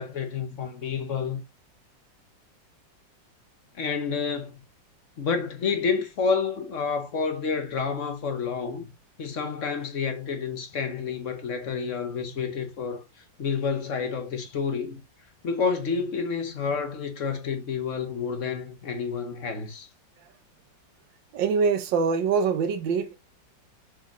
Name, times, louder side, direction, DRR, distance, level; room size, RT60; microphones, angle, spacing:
voice 1, 0.0-1.4 3.8-4.6 5.2-8.9 9.2-13.0 13.4-15.0 15.4-19.9, left 5 dB, 50° left, 1.1 m, -29 dB
voice 2, 21.3-23.2, right 5 dB, 80° right, 1.6 m, -24 dB
7.0 x 5.0 x 3.0 m
omnidirectional pair, 2.0 m